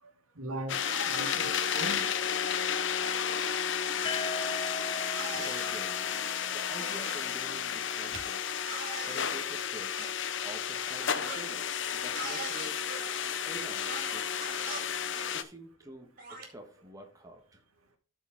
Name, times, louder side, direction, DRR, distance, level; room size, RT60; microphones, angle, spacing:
voice 1, 0.4-0.8 1.0-2.1 4.0-4.5 8.1-8.2 11.1-11.2 14.5-14.6, right 1 dB, 90° right, 2.1 m, -40 dB
sound 1, 0.7-15.4, left 8 dB, 55° left, 0.7 m, -32 dB
sound 2, 0.8-2.3 3.0-3.5 4.0-4.2 5.2-5.9 6.8-7.3 8.7-9.3 10.0-10.1 11.0-11.5 12.1-13.1 13.9-14.9 15.1-15.3 16.2-16.5, right 3 dB, 40° right, 2.6 m, -42 dB
sound 3, 4.1-7.9, left 1 dB, 25° left, 0.3 m, -41 dB
voice 2, 5.3-6.2 6.5-8.4 9.0-10.1 10.4-12.8 13.5-14.3 15.3-17.6, right 1 dB, 15° right, 1.3 m, -48 dB
13.5 x 4.9 x 3.6 m
head